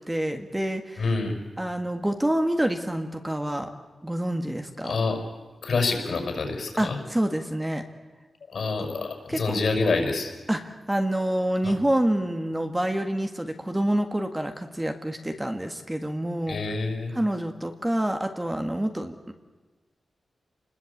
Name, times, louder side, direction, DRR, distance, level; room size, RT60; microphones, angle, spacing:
voice 1, 0.1-1.1 1.6-3.7 4.0-5.0 6.8-7.8 9.3-9.6 10.5-16.6 17.1-19.3, right 1 dB, 10° right, 6 dB, 1.6 m, -27 dB
voice 2, 1.0-1.4 4.8-5.2 5.6-7.0 8.5-10.3 11.6-11.7 16.5-17.1, left 3 dB, 65° left, 4 dB, 5.9 m, -27 dB
29.5 x 20.5 x 8.6 m, 1.2 s
wide cardioid pair, 145°, 0 cm